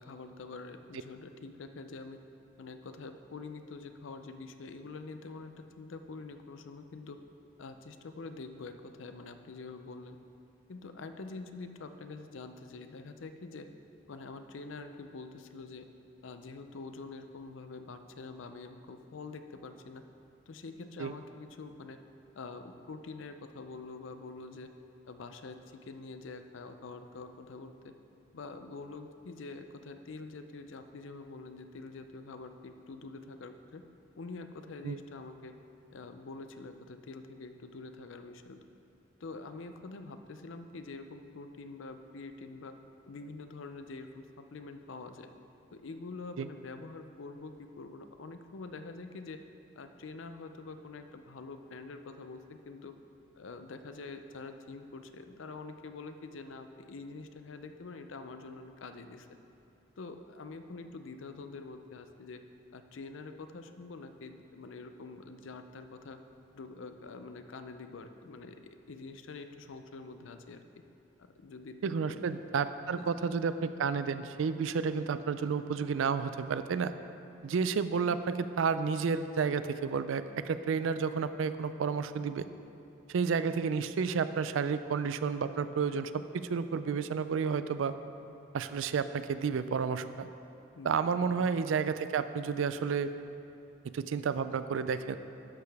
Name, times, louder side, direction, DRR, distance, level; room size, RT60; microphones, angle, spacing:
voice 1, 0.0-2.2 2.6-7.2 7.6-10.2 10.7-13.7 14.1-15.9 16.2-20.0 20.5-22.0 22.3-24.7 25.1-27.9 28.3-33.8 34.1-35.5 35.9-38.6 39.2-42.7 43.1-45.3 45.7-49.4 49.8-52.9 53.3-59.3 60.0-62.4 62.7-66.2 66.5-68.6 68.9-70.6 71.4-71.8 72.1-72.3 72.9-73.1 90.7-90.9 91.2-91.5, left 3 dB, 80° left, 8 dB, 0.5 m, -46 dB
voice 2, 71.8-76.9 77.4-82.5 83.1-88.0 88.5-90.3 90.8-93.1 93.9-95.2, right 5 dB, 85° right, 12 dB, 0.4 m, -31 dB
11.5 x 6.7 x 3.5 m, 2.7 s
head